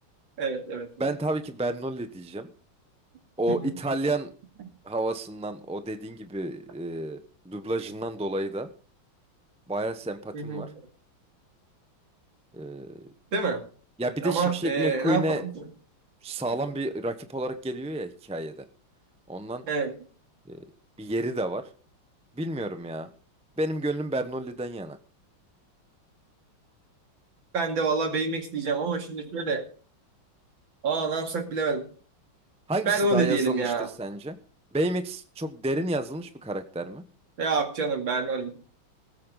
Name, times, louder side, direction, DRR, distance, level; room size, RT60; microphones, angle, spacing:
voice 1, 0.4-0.9 3.5-3.7 10.3-10.6 13.3-13.6 14.2-15.6 19.7-19.9 27.5-29.6 30.8-31.8 32.9-33.9 37.4-38.6, right 4 dB, 70° right, 4 dB, 3.1 m, -27 dB
voice 2, 1.0-2.5 3.4-4.3 4.8-8.7 9.7-10.7 12.5-13.1 14.0-15.4 16.2-18.6 19.3-19.7 20.5-20.6 21.0-21.7 22.4-23.1 23.6-25.0 32.7-34.4 34.7-37.0, right 1 dB, 10° right, 9 dB, 0.4 m, -30 dB
20.0 x 8.6 x 4.0 m, 0.40 s
omnidirectional pair, 2.2 m